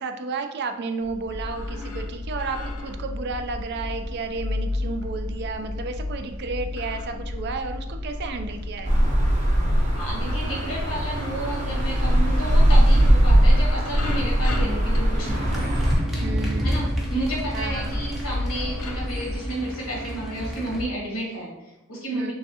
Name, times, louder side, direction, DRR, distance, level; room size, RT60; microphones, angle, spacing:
voice 1, 0.0-9.0 16.2-16.8 17.5-17.9 22.1-22.3, right 4 dB, 50° right, 6 dB, 0.3 m, -32 dB
sound 1, 1.0-19.4, left 2 dB, 70° left, 0.5 m, -32 dB
sound 2, 8.8-16.0, equal, 30° right, 0.7 m, -20 dB
voice 2, 10.0-15.7 16.6-22.3, right 1 dB, 85° left, -3 dB, 1.3 m, -31 dB
sound 3, 15.3-20.8, equal, ahead, 0.6 m, -29 dB
3.4 x 3.1 x 2.8 m, 0.98 s
head